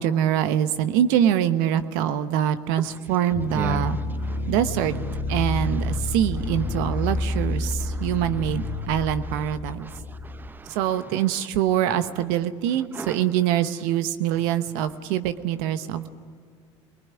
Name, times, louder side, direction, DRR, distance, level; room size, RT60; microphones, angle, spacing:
voice 1, 0.0-4.0 4.5-5.0 5.3-9.9 10.7-16.1, right 10 dB, 70° right, 11 dB, 1.1 m, -24 dB
sound 1, 3.3-10.5, left 2 dB, 60° left, 1.9 m, -29 dB
voice 2, 3.5-4.4 7.0-7.1 7.8-8.1 8.8-8.9 9.8-10.8 11.1-11.2 12.9-13.2, right 3 dB, 15° right, 14 dB, 0.7 m, -37 dB
20.5 x 20.0 x 9.8 m, 2.1 s
hypercardioid pair, 80°, 15 cm